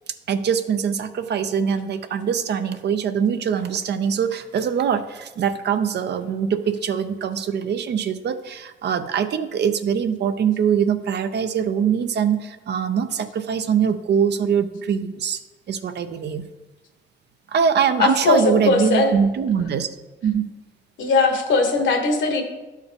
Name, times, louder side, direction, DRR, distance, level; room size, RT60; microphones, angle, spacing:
voice 1, 0.3-15.4 15.7-16.4 17.5-19.9 20.2-20.4, right 7 dB, 60° right, 10 dB, 0.6 m, -23 dB
voice 2, 18.0-19.1 21.0-22.4, left 3 dB, 70° left, 4 dB, 1.5 m, -19 dB
12.0 x 4.6 x 3.5 m, 1.1 s
cardioid pair, 90°, 20 cm